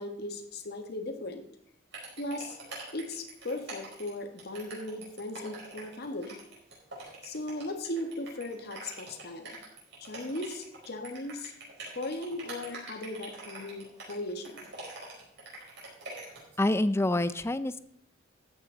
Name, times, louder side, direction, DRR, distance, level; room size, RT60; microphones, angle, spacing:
voice 1, 0.0-1.4 2.2-2.6 2.9-6.4 7.2-9.6 10.0-11.5 11.9-14.7, left 1 dB, 55° left, 6 dB, 1.5 m, -37 dB
sound 1, 1.9-16.6, right 3 dB, 60° right, 4.8 m, -45 dB
voice 2, 16.6-17.8, left 1 dB, 15° left, 14 dB, 0.5 m, -27 dB
13.5 x 8.8 x 3.9 m, 0.70 s
head